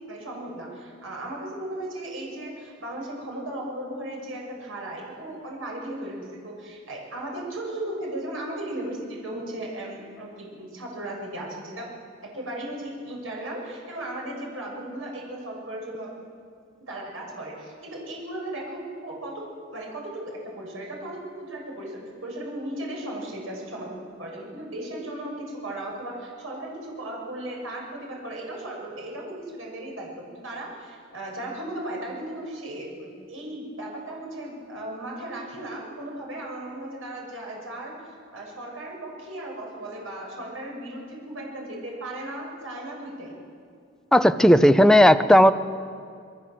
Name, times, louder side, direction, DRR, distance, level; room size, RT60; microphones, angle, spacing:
voice 1, 0.1-11.9 12.3-16.1 16.9-19.4 19.7-37.9 38.3-43.3, right 1 dB, 85° right, -2 dB, 7.0 m, -36 dB
voice 2, 44.1-45.5, equal, 5° left, 9 dB, 0.8 m, -15 dB
27.5 x 23.0 x 7.7 m, 2.2 s
head